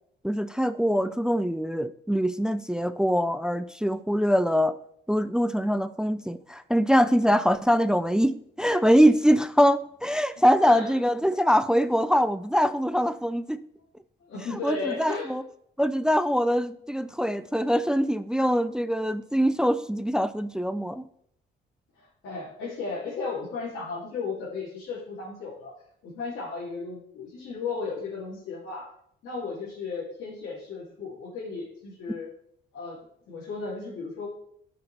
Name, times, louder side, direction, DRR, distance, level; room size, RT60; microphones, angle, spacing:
voice 1, 0.2-4.7 5.1-13.6 14.6-15.4 15.8-21.0, equal, 5° right, 13 dB, 0.4 m, -23 dB
voice 2, 10.6-11.0 14.2-15.3 22.0-25.7 26.0-28.9 29.2-32.3 32.7-33.0 33.3-34.3, left 4 dB, 80° left, -9 dB, 3.0 m, -35 dB
13.0 x 5.9 x 3.4 m, 0.71 s
cardioid pair, 90°, 20 cm